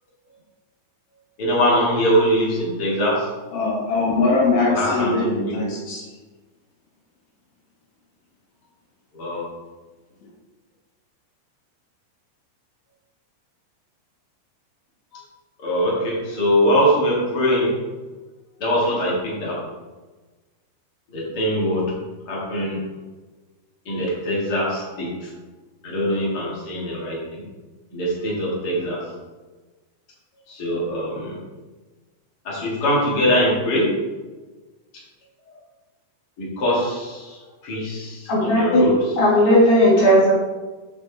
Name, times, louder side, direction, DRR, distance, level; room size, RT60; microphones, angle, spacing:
voice 1, 1.4-3.3 4.7-5.7 9.1-9.4 15.1-15.2 15.6-17.7 18.6-19.6 21.1-21.8 22.3-22.8 23.9-25.3 25.8-27.4 27.9-29.0 30.5-31.4 32.4-33.8 36.4-38.9, equal, 30° left, -5 dB, 1.9 m, -22 dB
voice 2, 3.5-6.0, left 3 dB, 75° left, -4 dB, 1.6 m, -21 dB
voice 3, 38.3-38.9 39.2-40.3, equal, 60° left, -4 dB, 3.0 m, -15 dB
7.5 x 7.2 x 3.6 m, 1.2 s
omnidirectional pair, 5.4 m